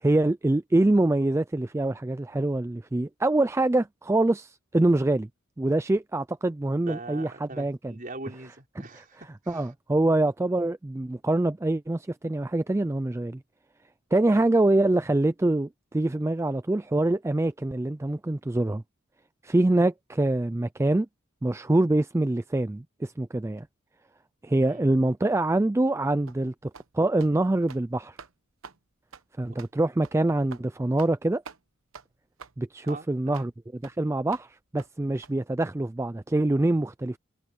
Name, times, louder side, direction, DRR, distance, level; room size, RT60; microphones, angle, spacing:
voice 1, 0.0-5.3 5.6-7.9 9.0-9.1 9.5-13.4 14.1-18.8 19.4-21.1 21.4-23.7 24.4-28.2 29.4-31.4 32.6-37.2, right 2 dB, 15° right, 0.3 m, -25 dB
voice 2, 6.8-9.7 14.3-14.4 24.7-24.8 29.5-29.6 32.8-33.5, right 2 dB, 40° right, 5.3 m, -42 dB
sound 1, 26.3-26.4 26.7-26.9 27.2-27.3 27.6-27.8 28.2-28.3 28.6-28.8 29.1-29.2 29.6-29.7 30.0-30.2 30.5-30.6 31.0-31.2 31.4-31.6 31.9-32.1 32.4-32.6 32.9-33.0 33.3-33.5 33.8-33.9 34.3-34.5 34.8-34.9 35.2-35.3, right 5 dB, 75° right, 1.0 m, -46 dB
head